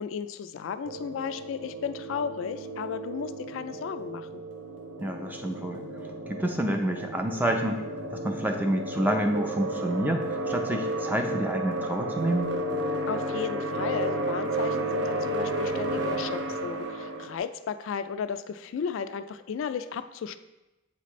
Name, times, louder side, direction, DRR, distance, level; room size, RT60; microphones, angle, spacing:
voice 1, 0.0-4.4 13.1-20.4, left 7 dB, 75° left, 11 dB, 0.3 m, -34 dB
sound 1, 0.8-17.4, right 1 dB, 60° right, 0.6 m, -32 dB
voice 2, 5.0-5.8 6.3-7.8 8.1-12.5, right 1 dB, 10° right, 4 dB, 0.5 m, -28 dB
7.8 x 4.1 x 3.1 m, 1.0 s
head